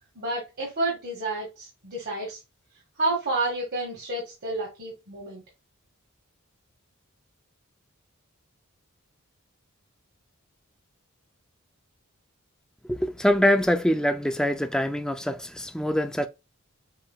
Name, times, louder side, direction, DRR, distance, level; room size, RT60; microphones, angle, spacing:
voice 1, 0.2-2.4 3.0-5.4, right 2 dB, 50° right, 1.8 m, -30 dB
voice 2, 12.9-16.3, equal, 5° left, 0.4 m, -24 dB
7.4 x 3.0 x 2.3 m
head